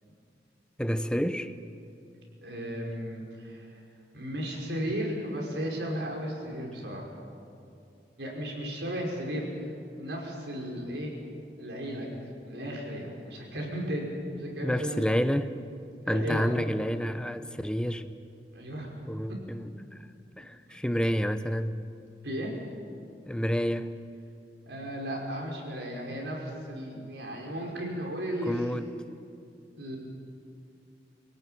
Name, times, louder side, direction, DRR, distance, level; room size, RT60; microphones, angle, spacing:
voice 1, 0.8-1.5 14.6-15.6 16.1-18.1 19.1-20.1 20.4-21.8 23.2-23.9 28.4-29.0, equal, 5° left, 10 dB, 0.8 m, -29 dB
voice 2, 2.4-3.8 4.1-7.1 8.2-9.4 10.0-11.1 11.6-12.1 12.5-15.0 16.0-16.6 18.5-18.9 19.3-19.4 20.7-20.8 22.2-22.5 24.7-28.6 29.8-30.0, equal, 80° right, -1 dB, 5.6 m, -35 dB
26.5 x 17.0 x 9.2 m, 2.6 s
head